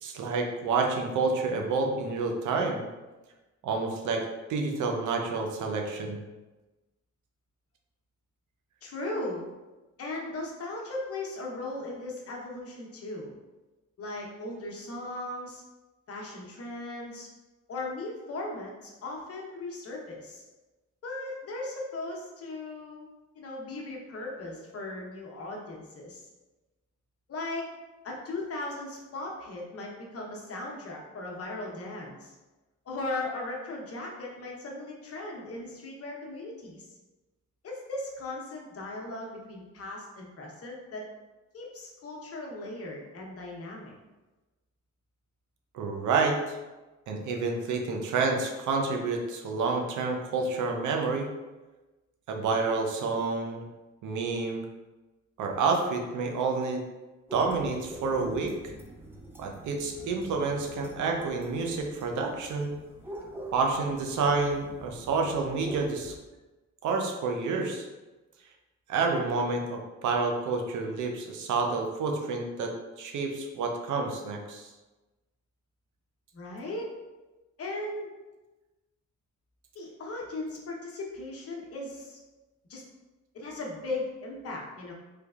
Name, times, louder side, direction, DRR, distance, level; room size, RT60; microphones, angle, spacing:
voice 1, 0.0-2.8 3.6-4.2 4.5-6.2 45.7-46.6 47.1-51.3 52.3-53.7 54.0-54.6 55.4-56.8 57.3-58.5 59.4-62.7 63.5-66.1 66.8-67.9 68.9-72.7 73.0-74.7, right 4 dB, 75° right, 2 dB, 0.6 m, -29 dB
voice 2, 8.8-9.5 10.0-13.3 14.0-15.6 16.1-17.3 17.7-20.4 21.0-23.1 23.3-26.3 27.3-27.7 28.0-32.3 32.9-36.9 37.6-41.1 41.5-44.0 76.3-76.9 77.6-78.1 79.7-82.2 82.7-82.8 83.3-84.9, left 2 dB, 50° left, -1 dB, 0.9 m, -37 dB
sound 1, 57.3-66.2, right 2 dB, 10° right, 0.5 m, -45 dB
3.3 x 3.2 x 2.4 m, 1.1 s
cardioid pair, 90°, 30 cm